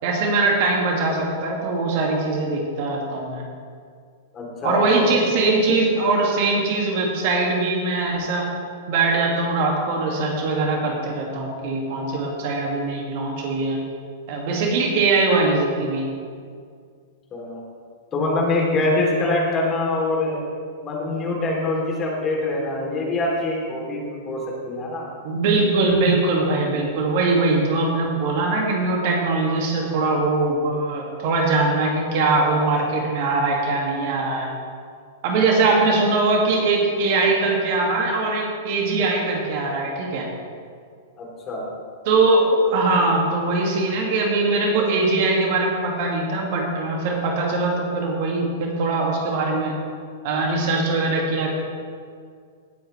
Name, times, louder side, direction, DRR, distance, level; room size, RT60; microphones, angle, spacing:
voice 1, 0.0-3.4 4.6-8.5 8.9-13.8 14.3-16.1 25.2-34.5 35.2-40.3 42.0-49.7 50.2-51.5, right 3 dB, 55° right, 0 dB, 2.3 m, -21 dB
voice 2, 4.3-5.2 17.3-17.6 18.1-20.4 20.8-24.4 24.7-25.1 41.2-41.7, left 2 dB, 30° left, -2 dB, 3.3 m, -24 dB
17.5 x 8.3 x 3.4 m, 2.1 s
hypercardioid pair, 105°, 0 cm